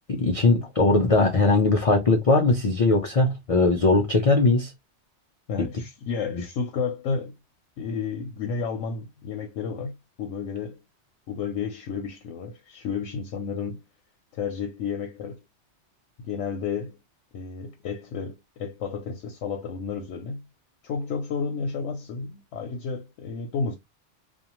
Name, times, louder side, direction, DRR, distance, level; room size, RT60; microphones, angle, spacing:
voice 1, 0.1-4.7, left 3 dB, 65° left, 0.3 m, -20 dB
voice 2, 5.5-7.4 7.8-10.8 11.3-13.8 14.3-15.4 16.2-17.0 17.3-20.5 20.8-23.8, left 5 dB, 90° left, 0.9 m, -31 dB
2.5 x 2.2 x 2.9 m
omnidirectional pair, 1.2 m